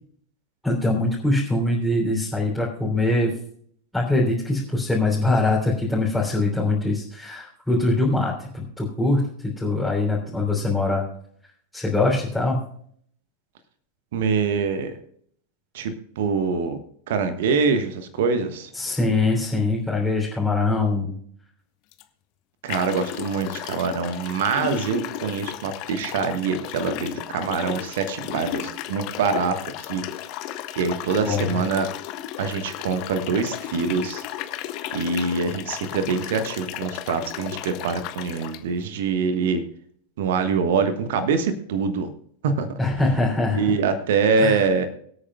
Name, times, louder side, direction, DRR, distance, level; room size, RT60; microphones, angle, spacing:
voice 1, 0.6-3.3 3.9-11.0 11.7-12.6 18.7-21.1 31.2-31.6 42.8-43.7 44.4-44.6, left 2 dB, ahead, -6 dB, 3.2 m, -23 dB
voice 2, 14.1-15.0 15.7-16.8 17.1-18.7 22.6-30.0 30.8-31.9 32.4-34.2 34.9-39.6 40.2-42.1 42.4-42.7 43.5-44.9, right 5 dB, 55° right, 10 dB, 1.3 m, -24 dB
sound 1, 21.9-22.0 22.7-38.6, left 12 dB, 40° left, 1.0 m, -34 dB
23.5 x 8.7 x 2.3 m, 0.62 s
figure-of-eight pair, 90°, 0 cm